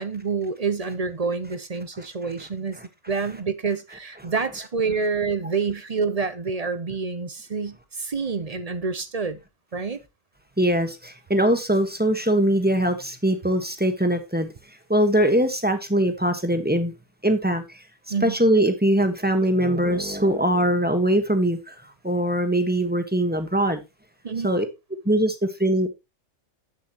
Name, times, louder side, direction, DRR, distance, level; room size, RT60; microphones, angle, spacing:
voice 1, 0.0-2.8 3.1-9.4 9.7-10.0 18.1-18.4 24.2-24.5, right 5 dB, 35° right, 0.7 m, -27 dB
voice 2, 10.6-14.5 14.9-16.9 17.2-17.8 18.2-21.7 22.0-23.8 24.4-24.6 25.0-25.9, right 1 dB, 5° right, 1.4 m, -22 dB
10.5 x 8.4 x 2.9 m
omnidirectional pair, 1.4 m